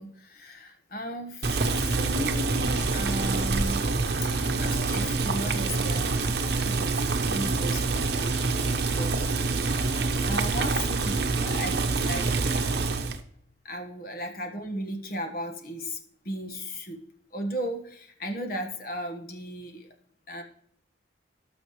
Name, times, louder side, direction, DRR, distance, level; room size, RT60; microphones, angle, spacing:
voice 1, 0.0-3.9 4.3-9.1 10.2-12.6 13.6-16.0 16.2-17.0 17.3-19.9 20.3-20.4, equal, 50° left, 4 dB, 1.5 m, -36 dB
Boiling, 1.4-13.2, right 3 dB, 60° right, 0.9 m, -26 dB
18.5 x 6.5 x 3.2 m, 0.67 s
head